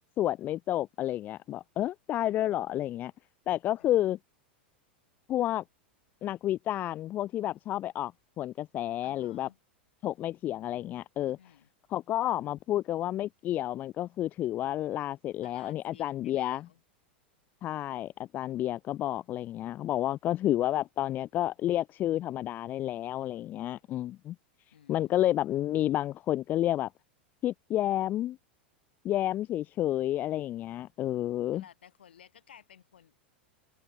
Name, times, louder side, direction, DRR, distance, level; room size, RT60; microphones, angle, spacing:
voice 1, 0.2-3.1 3.5-4.2 5.3-5.6 6.2-8.1 8.4-9.5 10.0-11.4 11.9-16.7 17.6-24.4 24.9-26.9 27.4-28.4 29.0-31.6, left 13 dB, 30° left, 0.5 m, -30 dB
voice 2, 9.0-9.6 11.4-11.7 15.4-16.8 24.7-25.6 31.5-33.2, left 9 dB, 65° left, 6.3 m, -56 dB
open air
figure-of-eight pair, 90°, 6 cm